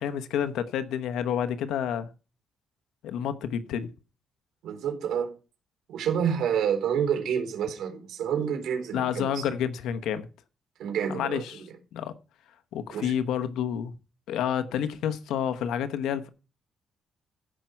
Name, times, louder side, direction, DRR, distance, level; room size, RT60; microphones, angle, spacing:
voice 1, 0.0-2.1 3.0-3.9 8.9-10.3 11.1-11.6 11.9-12.1 12.7-13.9 14.3-16.3, left 9 dB, 90° left, 1.1 m, -29 dB
voice 2, 4.6-5.3 5.9-9.4 10.8-11.4 12.9-13.1, right 8 dB, 80° right, 3.9 m, -28 dB
15.5 x 5.9 x 4.5 m
cardioid pair, 120°, 0 cm